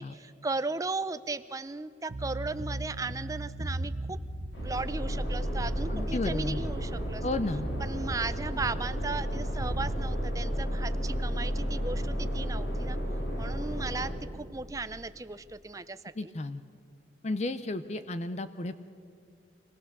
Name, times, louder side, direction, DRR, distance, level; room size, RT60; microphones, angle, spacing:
voice 1, 0.0-4.2 4.6-7.2 7.8-13.0 13.4-16.3, right 3 dB, 20° right, 12 dB, 0.5 m, -36 dB
sound 1, 2.1-10.1, right 2 dB, 75° right, 0.9 m, -38 dB
sound 2, 4.5-14.1, equal, 75° left, 3.9 m, -32 dB
voice 2, 5.9-6.6 7.2-7.7 16.2-16.6 17.2-18.8, left 2 dB, 40° left, 11 dB, 0.5 m, -33 dB
24.5 x 17.5 x 6.7 m, 2.4 s
head